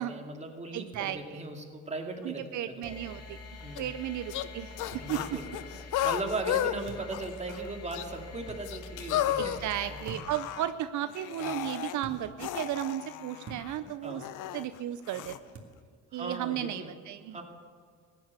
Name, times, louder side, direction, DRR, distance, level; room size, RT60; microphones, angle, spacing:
voice 1, 0.0-3.2 3.6-3.9 5.0-5.5 5.9-9.6 9.9-10.0 11.4-11.6 14.0-14.3 16.1-16.9 17.3-17.4, right 2 dB, 20° right, 2 dB, 2.4 m, -38 dB
voice 2, 0.7-1.4 2.2-3.4 3.8-4.7 5.1-5.6 9.4-14.2 14.5-15.4 16.1-17.4, right 12 dB, 75° right, 11 dB, 0.6 m, -34 dB
sound 1, 0.9-1.1 2.8-3.0 4.9-5.1 6.8-7.2 8.4-8.6 10.0-10.5 12.0-12.2 13.4-13.7 15.5-15.7, right 3 dB, 50° right, 2.2 m, -45 dB
sound 2, 2.8-10.1, left 3 dB, 55° left, 2.5 m, -46 dB
sound 3, 3.8-3.9 4.3-4.5 4.8-6.7 7.1-7.6 7.9-8.0 8.6-10.7 11.1-12.0 12.4-14.6 15.1-15.4, left 12 dB, 85° left, 0.7 m, -33 dB
15.0 x 10.0 x 6.7 m, 2.2 s
cardioid pair, 90°, 30 cm